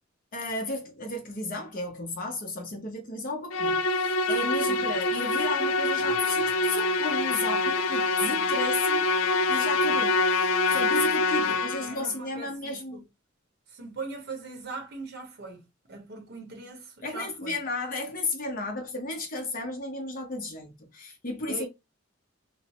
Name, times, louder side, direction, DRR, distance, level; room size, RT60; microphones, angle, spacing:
voice 1, 0.3-9.1 9.5-13.0 17.0-21.7, left 2 dB, 45° left, 0.8 m, -34 dB
Musical instrument, 3.5-12.0, left 3 dB, 80° left, 0.4 m, -25 dB
voice 2, 11.4-13.0 13.7-17.6 21.5-21.7, right 3 dB, 55° right, 0.8 m, -41 dB
3.0 x 2.0 x 2.9 m
head